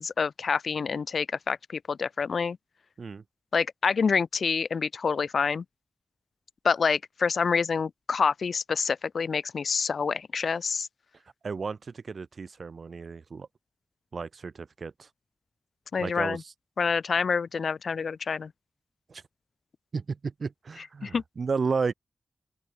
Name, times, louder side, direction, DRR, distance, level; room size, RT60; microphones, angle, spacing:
voice 1, 0.0-2.6 3.5-5.6 6.6-10.9 15.9-16.4 16.8-18.5 21.0-21.2, left 5 dB, 85° left, 2.1 m, -27 dB
voice 2, 11.4-13.5 14.1-15.1 16.0-16.5 19.1-19.2 19.9-21.9, right 5 dB, 65° right, 6.9 m, -33 dB
open air
wide cardioid pair, 120°, 0 cm